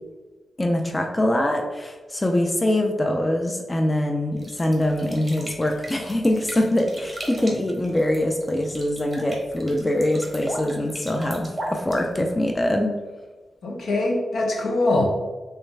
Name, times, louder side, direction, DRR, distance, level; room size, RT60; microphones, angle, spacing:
voice 1, 0.6-12.9, left 1 dB, 20° left, 3 dB, 0.4 m, -23 dB
sound 1, 4.4-12.6, right 1 dB, 10° right, 1.0 m, -38 dB
voice 2, 13.6-15.1, left 2 dB, 75° left, 0 dB, 0.8 m, -22 dB
3.3 x 3.3 x 3.2 m, 1.3 s
cardioid pair, 90°, 0 cm